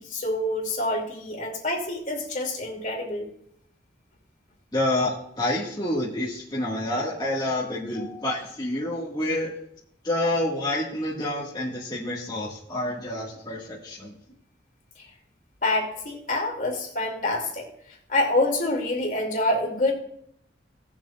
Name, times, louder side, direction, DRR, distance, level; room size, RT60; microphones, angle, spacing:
voice 1, 0.0-3.3 7.9-8.3 15.6-17.7 18.1-19.9, left 2 dB, 45° left, 0 dB, 2.9 m, -26 dB
voice 2, 4.7-9.5 10.0-14.1, left 1 dB, 25° left, -7 dB, 2.0 m, -28 dB
18.5 x 7.4 x 2.5 m, 0.70 s
head